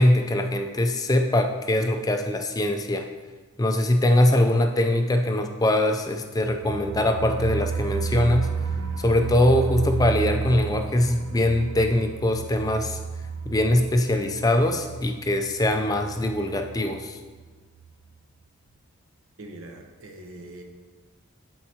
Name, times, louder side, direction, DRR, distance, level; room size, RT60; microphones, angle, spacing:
voice 1, 0.0-3.1 3.6-8.5 9.0-13.0 13.5-17.2, left 1 dB, 15° left, 5 dB, 0.4 m, -22 dB
sound 1, 6.3-17.0 17.4-17.5 17.8-17.9, right 5 dB, 85° right, 0.4 m, -32 dB
voice 2, 19.4-20.6, right 1 dB, 70° right, 2 dB, 0.8 m, -42 dB
12.0 x 4.7 x 2.9 m, 1.4 s
head